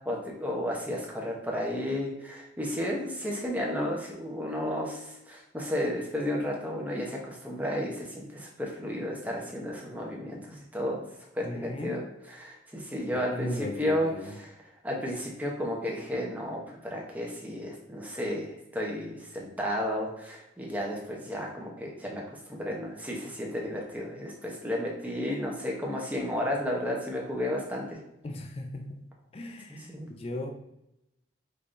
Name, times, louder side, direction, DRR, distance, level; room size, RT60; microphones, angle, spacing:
voice 1, 0.0-11.0 11.3-14.1 14.8-28.0 29.7-30.1, left 1 dB, 10° right, -2 dB, 0.8 m, -33 dB
voice 2, 11.4-12.0 13.1-14.4 28.2-29.0 29.3-30.5, left 1 dB, 30° left, 4 dB, 0.4 m, -37 dB
5.3 x 3.3 x 2.5 m, 0.85 s
head